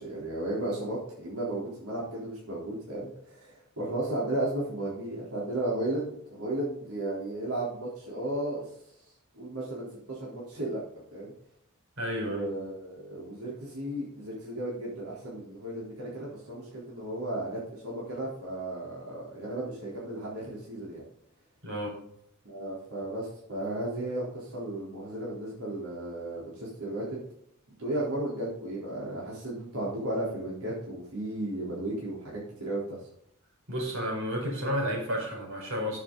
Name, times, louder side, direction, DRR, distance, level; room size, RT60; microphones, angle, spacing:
voice 1, 0.0-8.6 9.3-10.8 11.1-11.3 12.2-21.0 22.4-27.2 27.8-33.0, right 1 dB, 80° right, -6 dB, 3.9 m, -34 dB
voice 2, 12.0-12.5 21.6-21.9 33.7-36.0, equal, 65° right, 0 dB, 4.8 m, -31 dB
13.5 x 7.3 x 4.0 m, 0.72 s
head